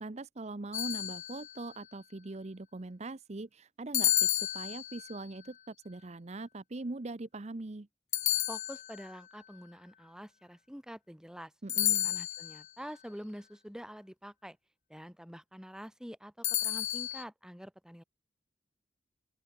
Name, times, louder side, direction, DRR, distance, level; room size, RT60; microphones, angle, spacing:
voice 1, 0.0-7.9 11.6-12.1, right 2 dB, 40° right, 0.7 m, -41 dB
sound 1, 0.7-1.7 3.9-5.2 8.1-9.2 11.7-12.7 16.4-17.2, left 14 dB, 45° left, 0.5 m, -31 dB
voice 2, 8.5-14.6 14.9-18.0, equal, 5° right, 7.1 m, -47 dB
open air
head